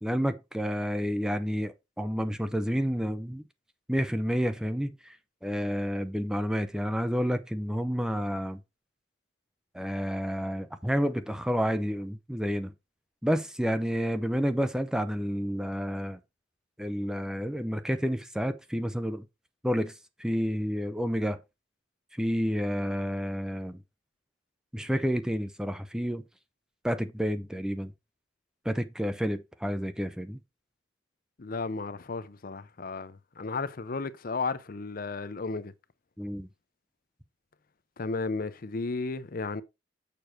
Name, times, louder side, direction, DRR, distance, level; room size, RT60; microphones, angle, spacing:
voice 1, 0.0-3.4 3.9-5.2 5.4-8.6 9.7-12.7 13.2-16.2 16.8-19.2 19.6-19.9 20.2-21.4 22.2-23.8 24.7-26.2 26.8-27.9 28.7-30.4 36.2-36.5, equal, 5° right, 0.5 m, -30 dB
voice 2, 31.4-35.7 38.0-39.6, left 3 dB, 45° left, 0.6 m, -34 dB
6.8 x 6.3 x 4.4 m
head